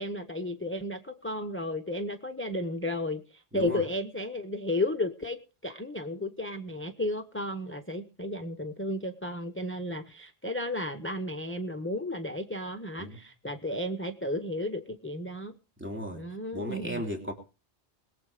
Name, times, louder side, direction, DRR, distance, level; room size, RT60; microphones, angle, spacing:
voice 1, 0.0-15.5 16.1-17.0, left 1 dB, 10° left, 7 dB, 0.9 m, -33 dB
voice 2, 15.8-16.2 16.5-17.3, equal, 10° right, 1 dB, 3.1 m, -35 dB
21.5 x 7.8 x 5.0 m, 0.33 s
omnidirectional pair, 1.1 m